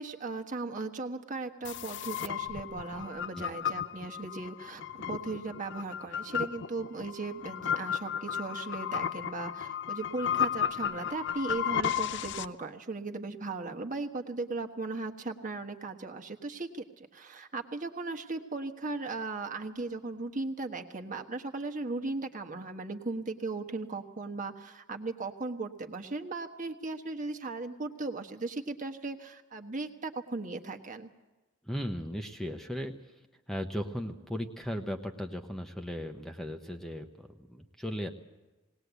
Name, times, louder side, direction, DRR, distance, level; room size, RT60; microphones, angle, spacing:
voice 1, 0.0-4.8 5.1-31.1, right 3 dB, 40° right, 5 dB, 1.3 m, -37 dB
sound 1, 1.6-12.5, left 9 dB, 60° left, 0.6 m, -34 dB
voice 2, 31.6-32.9 33.5-38.1, equal, ahead, 4 dB, 1.0 m, -37 dB
20.0 x 18.5 x 8.2 m, 1.1 s
head